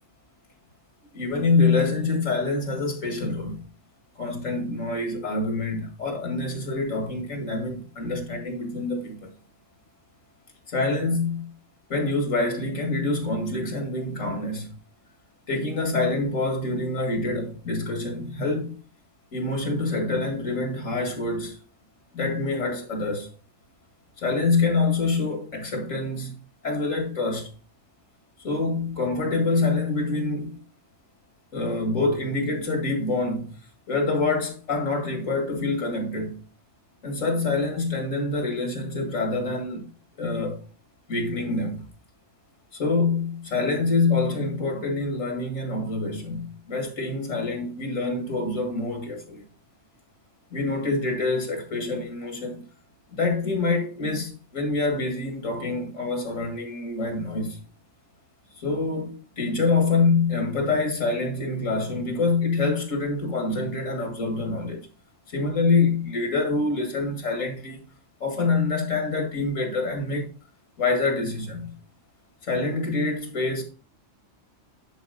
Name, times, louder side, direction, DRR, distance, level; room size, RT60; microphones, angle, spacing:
voice 1, 1.1-3.7 4.2-9.3 10.7-11.5 11.9-14.8 15.5-18.8 19.3-21.6 22.1-23.3 24.2-27.5 28.4-30.6 31.5-33.6 33.9-36.4 37.0-39.9 40.2-40.6 41.1-41.8 42.7-49.4 50.5-52.6 53.1-57.6 58.5-64.9 65.3-67.8 68.2-70.3 70.8-71.7 72.5-73.6, left 3 dB, 80° left, 2.3 m, -26 dB
10.0 x 4.3 x 3.9 m
omnidirectional pair, 1.3 m